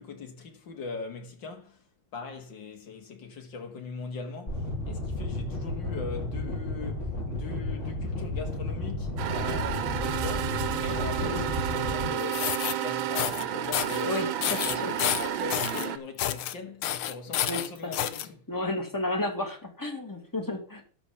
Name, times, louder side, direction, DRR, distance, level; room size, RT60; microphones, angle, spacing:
voice 1, 0.0-1.8 2.1-14.3 14.6-18.4, left 4 dB, 60° left, 2.5 m, -40 dB
sound 1, 4.5-12.1, left 2 dB, 35° left, 3.2 m, -33 dB
sound 2, 9.2-16.0, right 11 dB, 75° right, 1.6 m, -31 dB
sound 3, 12.2-12.7 13.2-13.4 13.7-14.0 14.4-15.9 16.2-16.5 16.8-18.3, left 12 dB, 85° left, 1.7 m, -29 dB
voice 2, 14.1-14.9 17.4-17.6 18.5-20.8, left 2 dB, 10° left, 1.9 m, -32 dB
12.5 x 4.6 x 7.0 m
omnidirectional pair, 2.3 m